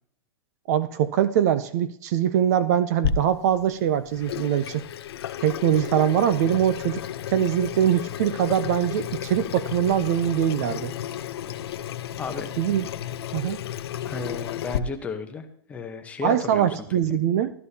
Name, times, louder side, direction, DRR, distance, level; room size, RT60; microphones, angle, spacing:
voice 1, 0.7-4.8 5.4-7.0 7.3-10.9 12.6-12.9 13.3-13.6 16.2-17.5, right 10 dB, 35° right, 14 dB, 0.4 m, -23 dB
Water tap faucet / Sink (filling or washing), 3.0-14.8, left 9 dB, 65° left, 0.6 m, -33 dB
voice 2, 12.2-12.5 14.0-17.2, left 5 dB, 10° left, 5 dB, 0.8 m, -34 dB
13.0 x 12.5 x 2.8 m, 0.67 s
hypercardioid pair, 160°, 14 cm